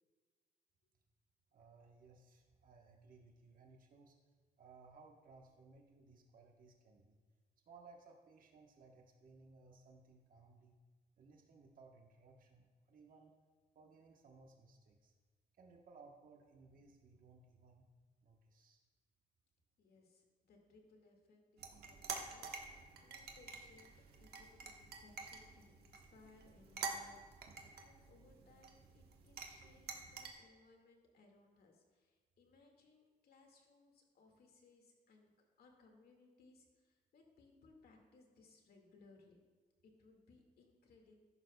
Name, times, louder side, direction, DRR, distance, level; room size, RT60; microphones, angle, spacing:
voice 1, 1.5-4.2 4.6-7.2 7.7-10.8 11.2-13.3 13.7-15.1 15.6-17.8 18.2-18.8, right 4 dB, 60° right, 1 dB, 1.1 m, -62 dB
voice 2, 19.8-22.5 22.7-35.3 35.6-39.4 39.8-41.2, left 3 dB, 75° left, 2 dB, 1.9 m, -66 dB
sound 1, 21.6-30.3, right 5 dB, 90° right, 1.2 m, -49 dB
14.0 x 11.0 x 2.3 m, 1.4 s
cardioid pair, 110°, 16 cm